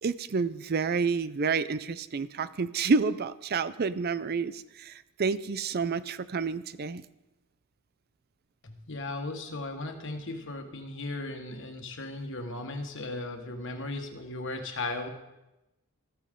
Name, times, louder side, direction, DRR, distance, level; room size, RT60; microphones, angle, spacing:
voice 1, 0.0-7.1, right 4 dB, 45° right, 15 dB, 0.5 m, -29 dB
voice 2, 8.6-15.1, left 2 dB, 60° left, 5 dB, 1.5 m, -36 dB
14.0 x 13.5 x 3.8 m, 0.96 s
head